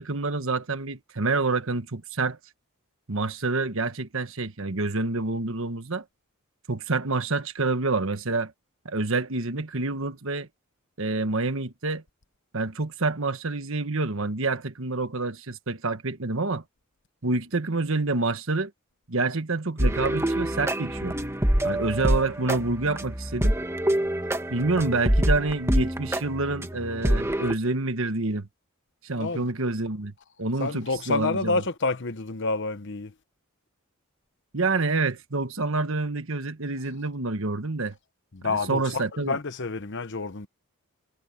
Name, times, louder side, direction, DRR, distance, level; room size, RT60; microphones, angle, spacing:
voice 1, 0.0-2.4 3.1-6.0 6.7-8.5 8.8-10.5 11.0-12.0 12.5-16.6 17.2-18.7 19.1-21.2 21.6-23.6 24.5-28.5 29.0-30.1 30.4-31.6 34.5-37.9 38.4-39.4, right 3 dB, 60° right, 1.4 m, -27 dB
sound 1, 19.8-27.6, right 1 dB, 10° right, 1.5 m, -26 dB
voice 2, 30.6-33.1 38.3-40.5, left 3 dB, 55° left, 1.1 m, -28 dB
head